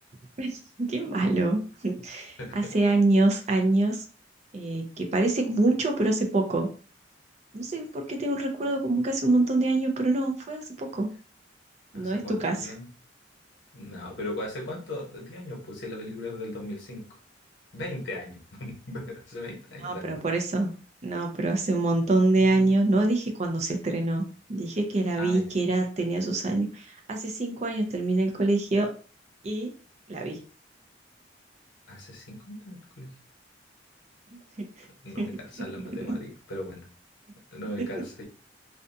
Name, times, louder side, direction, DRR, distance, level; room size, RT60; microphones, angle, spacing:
voice 1, 0.4-4.0 4.5-6.7 7.5-11.1 11.9-12.7 19.8-20.8 21.0-28.9 29.4-29.7 30.1-30.4 34.6-34.7 35.2-35.3, right 2 dB, 40° right, 3 dB, 0.5 m, -25 dB
voice 2, 2.4-2.7 8.6-8.7 11.9-12.9 13.7-17.0 17.7-20.2 25.2-25.5 31.9-33.1 35.0-36.9 37.5-38.2, left 1 dB, 75° left, -1 dB, 1.0 m, -38 dB
2.5 x 2.2 x 2.6 m, 0.38 s
head